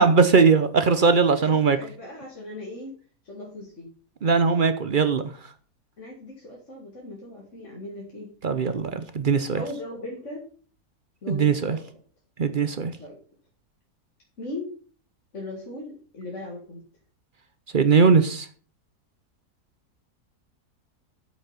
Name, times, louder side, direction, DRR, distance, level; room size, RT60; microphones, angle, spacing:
voice 1, 0.0-1.8 4.2-5.2 8.4-9.6 11.3-11.8 12.4-12.9 17.7-18.5, right 5 dB, 50° right, 10 dB, 0.6 m, -20 dB
voice 2, 1.4-3.0 3.2-3.9 6.0-8.3 8.6-9.2 9.5-10.5 11.2-11.8 13.0-13.2 14.4-14.7 15.3-16.8, left 1 dB, 50° left, -3 dB, 2.4 m, -38 dB
8.2 x 6.4 x 5.7 m, 0.43 s
omnidirectional pair, 1.7 m